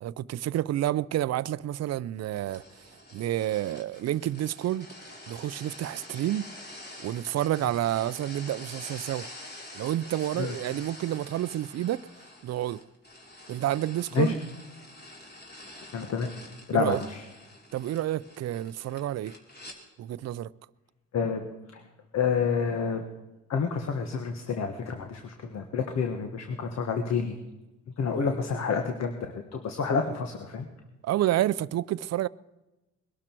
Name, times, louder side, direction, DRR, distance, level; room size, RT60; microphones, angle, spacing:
voice 1, 0.0-2.6 3.1-4.9 5.3-6.4 7.0-9.3 9.7-12.1 12.4-12.8 13.5-14.3 16.7-17.0 17.7-19.3 20.0-20.5 28.2-28.3 31.0-32.3, right 13 dB, 60° right, 0.5 m, -29 dB
sound 1, 2.3-19.8, left 1 dB, 35° left, 3.2 m, -47 dB
voice 2, 15.9-16.3 16.7-17.2 21.1-21.5 21.7-21.8 22.1-23.0 23.5-27.3 28.0-30.7, left 5 dB, 60° left, 1.4 m, -29 dB
21.5 x 12.5 x 4.5 m
cardioid pair, 90°, 30 cm